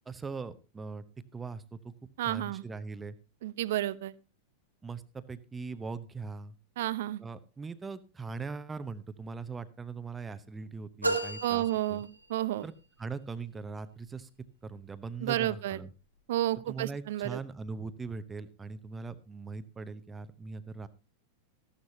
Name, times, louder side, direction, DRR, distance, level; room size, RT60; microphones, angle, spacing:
voice 1, 0.1-1.0 1.3-3.1 4.8-6.5 7.2-12.0 12.6-12.7 13.0-14.3 14.6-15.9 16.7-20.9, right 4 dB, 15° right, 13 dB, 0.8 m, -40 dB
voice 2, 2.2-2.6 3.4-4.1 6.8-7.2 11.4-12.7 15.2-15.8 16.3-17.4, right 14 dB, 55° right, 19 dB, 0.5 m, -31 dB
sound 1, 11.0-12.7, right 2 dB, 90° right, 1.3 m, -34 dB
14.5 x 12.0 x 2.8 m, 0.31 s
figure-of-eight pair, 90°, 0 cm